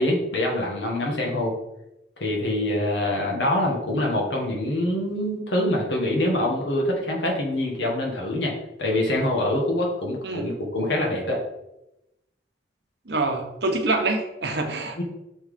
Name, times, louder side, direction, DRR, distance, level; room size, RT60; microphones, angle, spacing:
voice 1, 0.0-1.5 2.2-8.5 8.8-11.4 15.0-15.1, left 1 dB, 80° left, -1 dB, 1.7 m, -25 dB
voice 2, 13.1-15.0, right 2 dB, 70° right, 4 dB, 1.0 m, -26 dB
6.2 x 3.9 x 5.0 m, 0.91 s
head